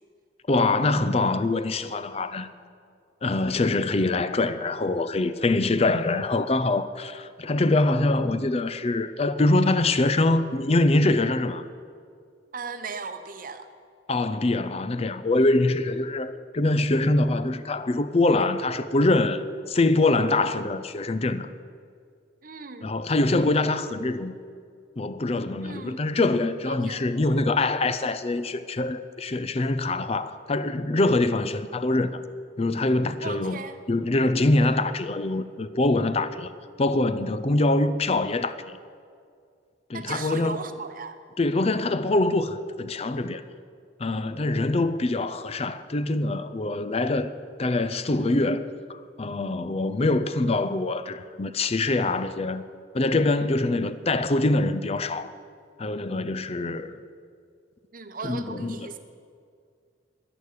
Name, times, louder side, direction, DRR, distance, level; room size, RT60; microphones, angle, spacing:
voice 1, 0.5-2.5 3.2-11.6 14.1-19.4 19.7-21.5 22.8-24.3 25.0-32.2 32.6-33.6 33.9-36.5 36.8-38.8 39.9-40.6 41.4-43.4 44.0-47.3 47.6-52.6 52.9-55.4 55.8-57.0 58.2-58.8, left 2 dB, 35° left, 0.5 m, -24 dB
voice 2, 12.5-13.7 22.4-23.0 25.6-26.1 26.7-27.0 33.2-33.8 39.9-41.2 57.9-59.0, right 4 dB, 45° right, 0.9 m, -37 dB
11.0 x 11.0 x 8.4 m
head